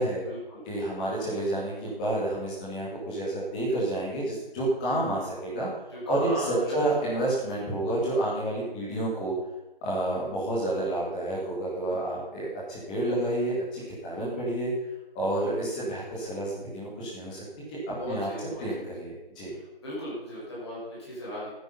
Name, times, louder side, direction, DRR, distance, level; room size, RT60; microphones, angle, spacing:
voice 1, 0.0-0.6 5.9-7.6 11.9-12.0 17.9-18.6 19.5-21.5, equal, 25° left, -7 dB, 5.7 m, -38 dB
voice 2, 0.7-5.7 6.1-9.3 9.8-14.7 15.1-17.4 17.7-17.8 18.1-18.3 18.6-19.5, right 1 dB, 10° left, -7 dB, 2.3 m, -29 dB
14.0 x 9.3 x 5.6 m, 1.0 s
figure-of-eight pair, 165°, 29 cm